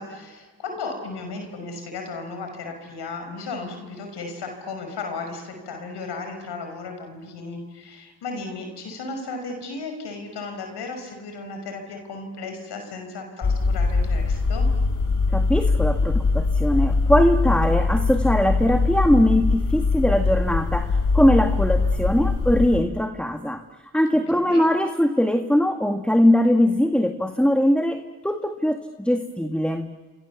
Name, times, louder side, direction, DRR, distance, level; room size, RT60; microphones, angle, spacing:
voice 1, 0.0-14.7 24.3-24.6, left 3 dB, 85° left, 5 dB, 5.7 m, -35 dB
sound 1, 13.4-22.8, left 3 dB, 50° left, 3.5 m, -22 dB
voice 2, 15.3-23.6 23.9-29.9, left 1 dB, 5° left, 5 dB, 1.8 m, -21 dB
27.5 x 27.0 x 7.2 m, 1.4 s
supercardioid pair, 50°, 40 cm